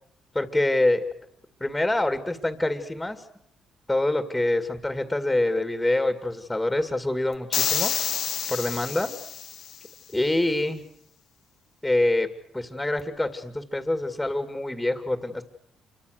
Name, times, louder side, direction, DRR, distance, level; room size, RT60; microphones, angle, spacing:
voice 1, 0.3-1.0 1.6-3.2 3.9-7.9 8.5-9.1 10.1-10.8 11.8-12.3 12.5-15.4, left 1 dB, 10° left, 7 dB, 2.5 m, -25 dB
sound 1, 7.5-9.8, left 9 dB, 65° left, 1.3 m, -28 dB
28.0 x 23.5 x 6.7 m, 0.72 s
cardioid pair, 90°, 0 cm